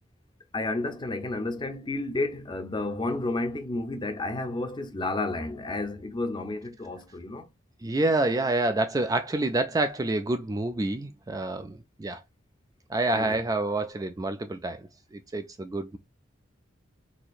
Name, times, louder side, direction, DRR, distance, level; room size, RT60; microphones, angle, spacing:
voice 1, 0.5-7.5 13.1-13.4, left 2 dB, 25° left, 0.6 m, -31 dB
voice 2, 7.8-12.2 12.9-14.9 15.3-16.0, right 2 dB, 20° right, 0.3 m, -27 dB
4.0 x 2.9 x 2.4 m
head